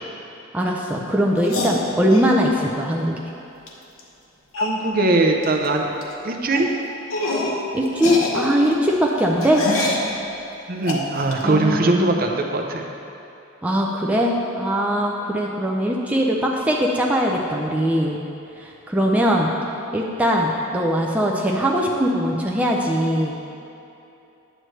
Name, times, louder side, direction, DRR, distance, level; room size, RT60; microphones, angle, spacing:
voice 1, 0.5-3.1 7.7-9.6 11.4-12.1 13.6-18.2 18.6-19.5 19.9-23.3, equal, 5° right, -2 dB, 0.4 m, -21 dB
sound 1, 1.4-2.3 3.7-3.8 4.0-4.1 4.5-4.8 5.4-5.7 5.9-6.1 6.5-6.7 7.1-7.6 7.9-10.1 10.8-11.4, left 2 dB, 90° left, 0.9 m, -26 dB
voice 2, 4.6-5.9 6.2-6.7 10.7-12.9, right 2 dB, 45° right, 3 dB, 0.6 m, -21 dB
9.0 x 7.7 x 3.2 m, 2.8 s
head